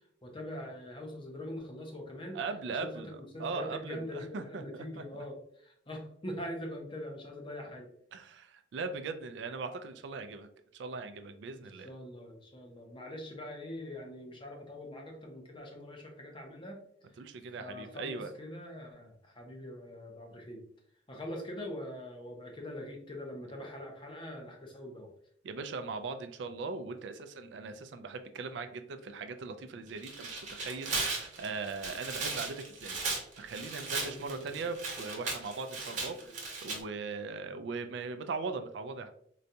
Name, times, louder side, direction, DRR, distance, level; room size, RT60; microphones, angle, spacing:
voice 1, 0.2-2.4 2.7-7.9 11.6-16.8 17.6-20.6 21.1-25.1 27.8-27.9 34.0-34.7 36.1-36.4, left 1 dB, 25° left, 1 dB, 0.6 m, -43 dB
voice 2, 2.3-5.0 8.1-11.9 17.2-18.3 25.4-39.1, right 4 dB, 65° right, 8 dB, 0.3 m, -40 dB
Tearing, 29.9-36.8, right 3 dB, 40° right, 0.8 m, -37 dB
3.9 x 2.2 x 2.7 m, 0.65 s
head